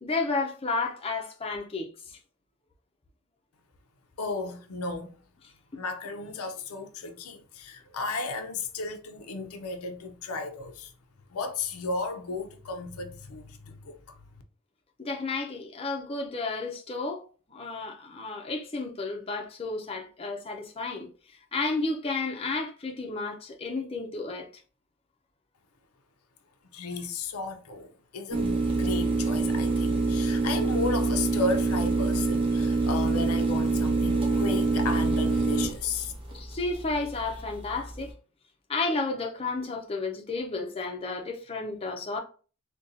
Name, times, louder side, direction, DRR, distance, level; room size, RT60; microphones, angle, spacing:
voice 1, 0.0-1.9 15.0-17.2 17.5-21.1 21.5-24.5 36.3-38.1 38.7-42.2, left 3 dB, 25° left, 0.5 m, -32 dB
voice 2, 4.2-5.2 5.7-10.9 11.3-14.2 26.7-36.1, left 3 dB, 85° left, 0.5 m, -34 dB
sound 1, 28.3-38.1, right 3 dB, 25° right, 0.8 m, -26 dB
3.9 x 2.2 x 2.6 m
head